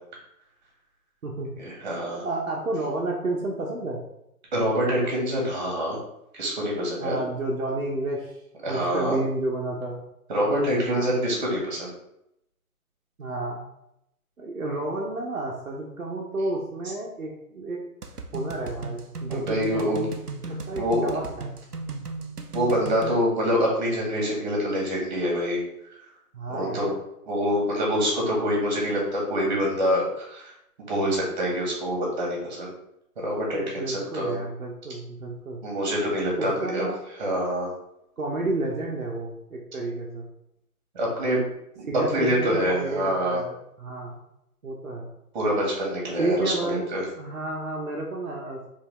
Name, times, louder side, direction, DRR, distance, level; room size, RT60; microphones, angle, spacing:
voice 1, 1.6-2.3 4.5-6.0 6.3-7.2 8.6-9.2 10.3-11.9 19.3-20.0 20.8-21.1 22.5-25.6 26.5-26.9 27.3-30.4 30.8-32.7 33.2-34.3 35.6-36.9 37.2-37.7 40.9-41.5 41.8-41.9 42.1-43.4 45.3-46.5 46.9-47.0, equal, 30° right, -3 dB, 1.6 m, -25 dB
voice 2, 2.2-4.0 7.0-8.4 8.7-10.0 10.8-11.1 13.2-13.6 14.4-17.8 18.3-20.1 20.5-21.5 26.3-26.9 33.5-35.6 36.4-37.0 38.2-40.3 41.9-44.2 44.6-45.1 46.2-46.9 47.2-48.7, right 2 dB, 65° right, -2 dB, 0.9 m, -31 dB
sound 1, 18.0-23.2, right 3 dB, 90° right, 0.7 m, -36 dB
4.5 x 3.4 x 3.1 m, 0.80 s
figure-of-eight pair, 140°, 45 cm